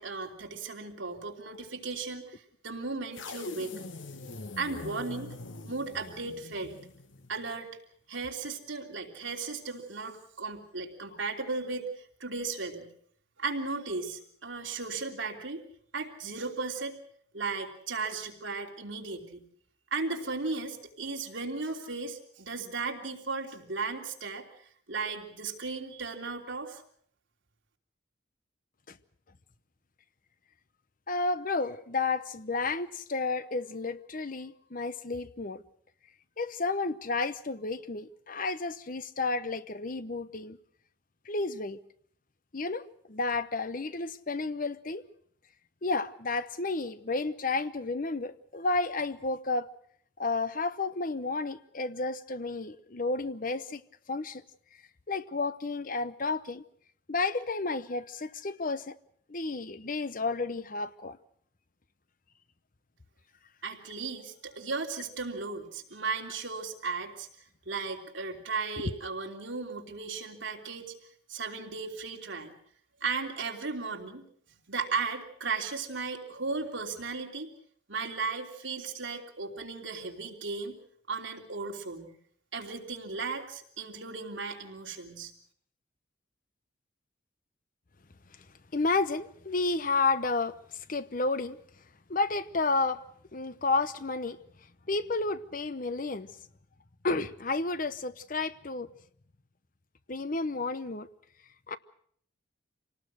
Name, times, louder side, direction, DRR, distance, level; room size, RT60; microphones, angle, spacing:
voice 1, 0.0-3.9 4.6-5.3 5.6-6.7 7.3-7.7 8.1-12.9 13.4-15.6 15.9-17.0 17.3-19.4 19.9-24.5 24.9-26.8 63.6-67.3 67.6-70.9 71.3-72.6 73.0-74.2 74.7-77.5 77.9-80.8 81.1-82.2 82.5-85.3, right 4 dB, 75° right, 3.2 m, -36 dB
sound 1, 3.1-7.4, left 3 dB, 75° left, 1.2 m, -43 dB
voice 2, 31.1-35.6 36.4-40.6 41.3-41.8 42.5-45.0 45.8-49.7 50.2-53.8 54.1-54.4 55.1-56.6 57.1-58.9 59.3-61.2 88.7-90.5 90.9-91.6 92.1-93.0 93.3-94.4 94.9-96.3 97.0-98.9 100.1-101.1 101.7-101.8, left 3 dB, 45° left, 0.9 m, -31 dB
26.5 x 19.0 x 6.4 m
head